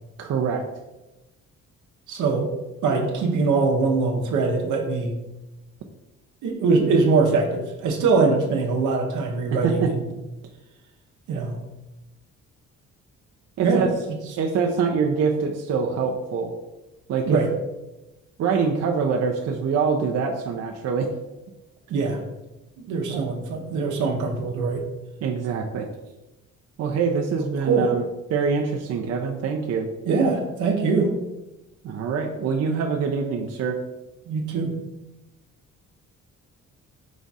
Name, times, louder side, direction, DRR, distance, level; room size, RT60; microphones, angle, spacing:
voice 1, 0.2-0.6 9.6-9.9 13.6-13.9 14.4-16.5 17.1-17.4 18.4-21.1 23.1-23.2 25.2-25.9 26.8-28.0 28.3-29.9 31.8-33.8, right 5 dB, 55° right, 2 dB, 0.5 m, -24 dB
voice 2, 2.1-2.5 2.8-5.2 6.4-10.0 11.3-11.6 13.6-13.9 17.3-17.5 21.9-22.2 22.8-24.8 27.7-27.9 30.0-31.1 34.3-34.7, right 4 dB, 80° right, 2 dB, 0.9 m, -22 dB
5.0 x 2.4 x 4.0 m, 1.0 s
cardioid pair, 90°, 30 cm